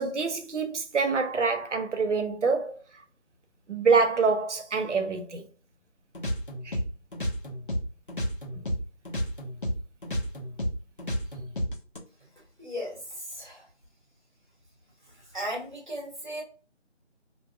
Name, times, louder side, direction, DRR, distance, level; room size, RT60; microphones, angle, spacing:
voice 1, 0.0-2.8 3.7-5.4 6.6-6.8, right 4 dB, 85° right, 0.7 m, -26 dB
sound 1, 6.1-8.8 9.1-12.0, equal, 50° left, 0.7 m, -31 dB
voice 2, 12.6-13.7 15.0-16.4, equal, 45° right, 1.1 m, -36 dB
2.5 x 2.3 x 2.3 m
figure-of-eight pair, 175°, 35 cm